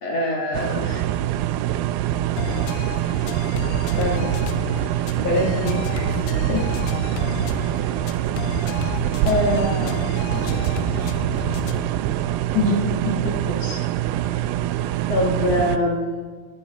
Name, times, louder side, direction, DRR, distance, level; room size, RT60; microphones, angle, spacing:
voice 1, 0.0-1.1 4.0-4.3 5.2-6.1 6.5-6.7 9.2-10.3 12.5-13.8 15.1-16.2, left 1 dB, 50° left, -2 dB, 2.3 m, -24 dB
sound 1, 0.5-15.8, right 12 dB, 85° right, 2.2 m, -24 dB
sound 2, 2.4-12.0, left 9 dB, 80° left, 2.1 m, -33 dB
voice 2, 10.2-11.6 14.2-14.3 14.9-15.1 15.6-15.9, right 4 dB, 60° right, -2 dB, 1.7 m, -40 dB
19.0 x 13.0 x 3.6 m, 1.5 s
omnidirectional pair, 4.7 m